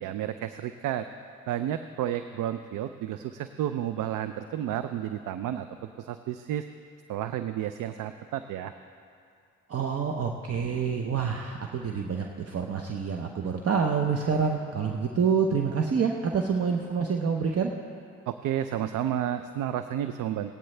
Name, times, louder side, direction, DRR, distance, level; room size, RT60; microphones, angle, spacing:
voice 1, 0.0-1.1 1.5-5.7 6.0-6.7 7.1-8.7 18.3-20.5, right 11 dB, 75° right, 10 dB, 0.5 m, -31 dB
voice 2, 9.7-17.7, right 6 dB, 50° right, 2 dB, 0.8 m, -27 dB
17.0 x 10.5 x 3.3 m, 2.4 s
supercardioid pair, 55°, 32 cm